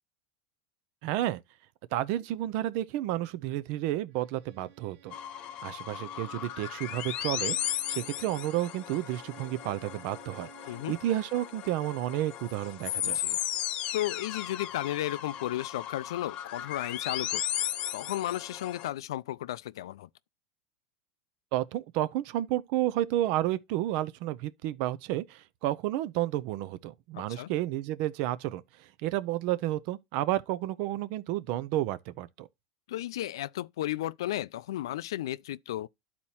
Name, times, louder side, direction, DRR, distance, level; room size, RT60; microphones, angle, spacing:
voice 1, 1.0-1.4 1.9-5.1 5.6-10.5 10.9-13.2 21.5-32.5, right 14 dB, 60° right, 0.5 m, -31 dB
Bowed string instrument, 4.1-11.0, right 12 dB, 85° right, 1.8 m, -56 dB
sound 1, 5.1-18.9, left 12 dB, 45° left, 0.7 m, -36 dB
voice 2, 13.0-13.4 13.9-17.4 17.9-20.1 27.1-27.5 32.9-35.9, left 14 dB, 90° left, 0.3 m, -34 dB
12.0 x 4.2 x 2.8 m
supercardioid pair, 130°, 2 cm